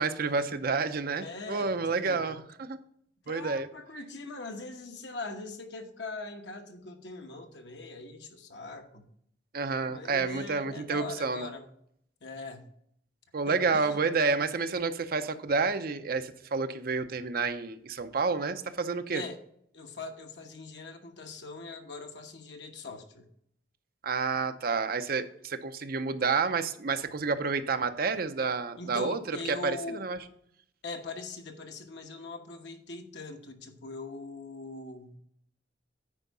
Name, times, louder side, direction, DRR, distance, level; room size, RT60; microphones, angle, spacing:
voice 1, 0.0-2.4 2.7-2.8 3.3-3.7 9.5-11.5 13.3-19.2 24.0-29.2 29.5-30.2, right 4 dB, 55° right, 9 dB, 0.6 m, -29 dB
voice 2, 1.2-2.3 3.2-9.1 9.9-11.7 12.2-12.7 13.5-14.0 19.1-19.4 19.7-23.3 28.8-30.1 30.8-35.2, left 3 dB, 80° left, 4 dB, 1.2 m, -41 dB
9.8 x 4.6 x 5.4 m, 0.70 s
head